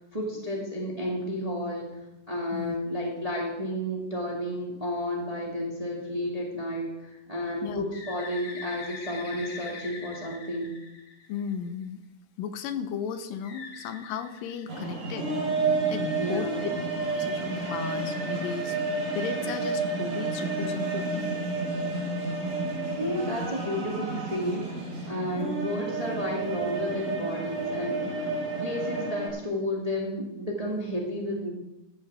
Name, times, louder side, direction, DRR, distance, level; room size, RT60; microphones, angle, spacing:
voice 1, 0.0-2.0 2.3-10.8 16.2-16.6 22.9-24.8 25.0-28.3 28.6-31.5, equal, 15° right, -2 dB, 1.4 m, -32 dB
Bird, 7.9-11.7 13.4-15.2, left 4 dB, 65° left, 3.7 m, -43 dB
voice 2, 11.3-12.0 12.4-15.3 15.9-16.7 17.1-18.8 19.1-21.5 25.2-25.5, left 7 dB, 85° left, 10 dB, 2.6 m, -35 dB
sound 1, 14.7-29.3, right 3 dB, 60° right, 5.8 m, -30 dB
14.0 x 12.0 x 3.6 m, 0.93 s
omnidirectional pair, 3.8 m